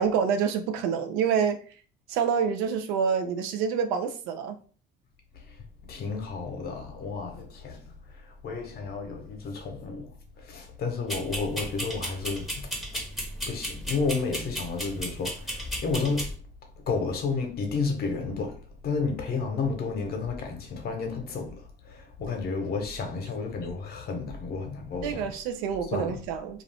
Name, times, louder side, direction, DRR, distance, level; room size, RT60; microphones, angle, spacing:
voice 1, 0.0-1.6 2.1-4.6 25.0-26.6, right 7 dB, 85° right, 0.5 m, -27 dB
voice 2, 5.9-7.8 8.2-10.1 10.4-13.0 13.5-16.3 16.9-25.3 25.9-26.2, left 4 dB, 50° left, 0.9 m, -32 dB
sound 1, 11.1-16.3, equal, ahead, 0.9 m, -35 dB
2.5 x 2.4 x 3.3 m
cardioid pair, 110°, 21 cm